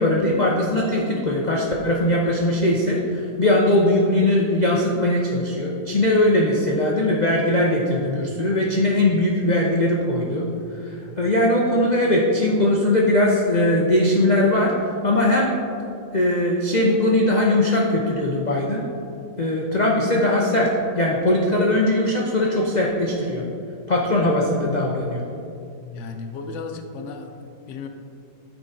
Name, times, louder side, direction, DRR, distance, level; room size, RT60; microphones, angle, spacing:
voice 1, 0.0-10.5 10.8-14.7 15.0-15.6 16.1-18.8 19.4-23.4 23.9-25.2, left 1 dB, 85° left, -2 dB, 0.3 m, -20 dB
voice 2, 25.9-27.9, left 4 dB, 65° left, 5 dB, 0.8 m, -35 dB
13.0 x 4.6 x 2.7 m, 2.5 s
omnidirectional pair, 1.8 m